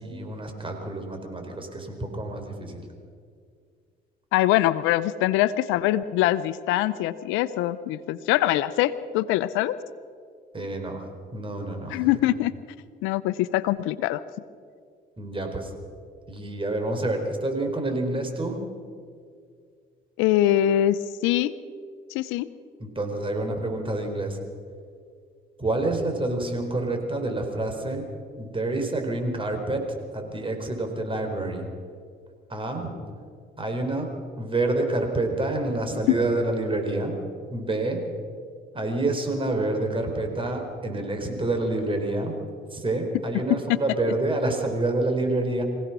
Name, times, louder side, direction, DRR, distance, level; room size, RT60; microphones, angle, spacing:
voice 1, 0.0-2.9 10.5-11.0 11.3-12.0 15.2-15.7 16.3-18.6 22.8-24.4 25.6-28.0 28.4-29.8 30.1-31.7 32.5-32.9 33.6-37.2 37.5-38.1 38.7-42.3 42.7-45.6, right 2 dB, 25° right, 4 dB, 4.6 m, -28 dB
voice 2, 4.3-9.8 11.9-12.5 13.0-14.2 20.2-21.5 22.1-22.5 36.1-36.2 43.5-43.6, left 14 dB, 85° left, 15 dB, 0.7 m, -23 dB
25.0 x 17.0 x 6.2 m, 2.2 s
supercardioid pair, 75°, 20 cm